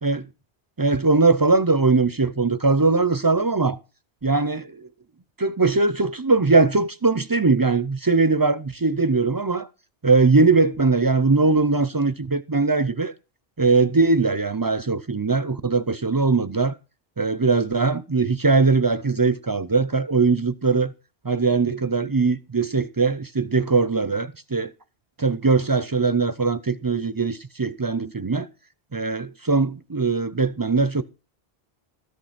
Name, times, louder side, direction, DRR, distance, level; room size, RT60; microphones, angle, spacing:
voice 1, 0.8-3.8 4.2-4.9 5.4-9.7 10.0-13.1 13.6-16.8 17.2-20.9 21.2-24.7 25.2-28.5 28.9-31.0, right 3 dB, 30° right, 0.4 m, -20 dB
13.5 x 6.6 x 5.9 m
omnidirectional pair, 1.0 m